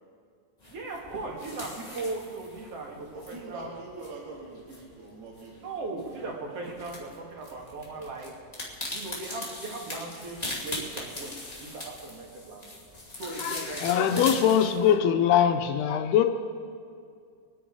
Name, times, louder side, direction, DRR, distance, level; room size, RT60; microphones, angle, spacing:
sound 1, 0.6-14.9, left 1 dB, 20° left, 1.2 m, -40 dB
voice 1, 0.6-3.7 5.6-8.3 8.9-12.7 13.2-14.1 14.7-14.9, right 3 dB, 45° right, -1 dB, 2.7 m, -38 dB
voice 2, 3.1-5.7 7.9-8.3, right 3 dB, 70° right, -3 dB, 4.1 m, -44 dB
voice 3, 13.4-16.3, left 9 dB, 80° left, 6 dB, 2.6 m, -22 dB
25.5 x 10.0 x 4.8 m, 2.2 s
omnidirectional pair, 4.7 m